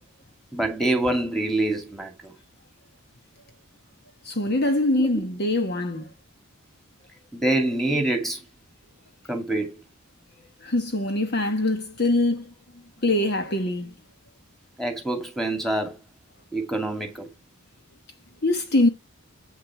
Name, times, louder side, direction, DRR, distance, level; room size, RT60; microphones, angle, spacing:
voice 1, 0.5-2.3 5.0-5.1 7.3-8.4 9.3-9.8 14.8-16.0 16.5-17.3, right 1 dB, ahead, 2.2 m, -26 dB
voice 2, 4.2-6.1 10.6-12.5 13.0-14.0 18.4-18.9, left 2 dB, 45° left, 1.2 m, -23 dB
8.5 x 6.8 x 4.7 m
head